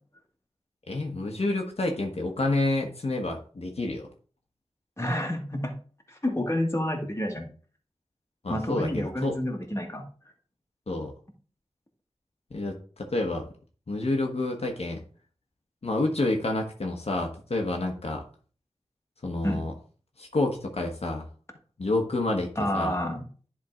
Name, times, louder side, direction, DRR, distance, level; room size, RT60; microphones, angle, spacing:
voice 1, 0.9-4.1 8.4-9.4 10.9-11.1 12.5-13.5 13.9-15.0 15.8-18.2 19.2-19.7 20.2-21.3 21.8-22.9, left 2 dB, 70° left, 1 dB, 1.2 m, -29 dB
voice 2, 5.0-5.7 6.1-7.4 8.5-10.0 19.4-19.7 22.5-23.2, left 1 dB, 25° left, 2 dB, 1.7 m, -29 dB
10.5 x 3.8 x 3.7 m, 0.41 s
wide cardioid pair, 50°, 11 cm